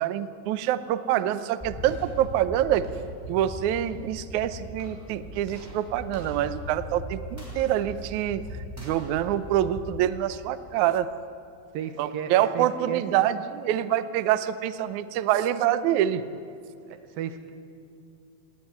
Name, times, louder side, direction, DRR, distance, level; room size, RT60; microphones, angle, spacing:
voice 1, 0.0-2.9 3.3-8.4 8.8-11.1 12.0-16.2, right 11 dB, 70° right, 12 dB, 2.0 m, -26 dB
sound 1, 1.6-10.7, left 1 dB, 5° right, 5.8 m, -40 dB
voice 2, 11.7-13.2 16.8-17.5, right 8 dB, 90° right, 8 dB, 3.0 m, -35 dB
19.5 x 17.5 x 9.6 m, 2.5 s
omnidirectional pair, 4.0 m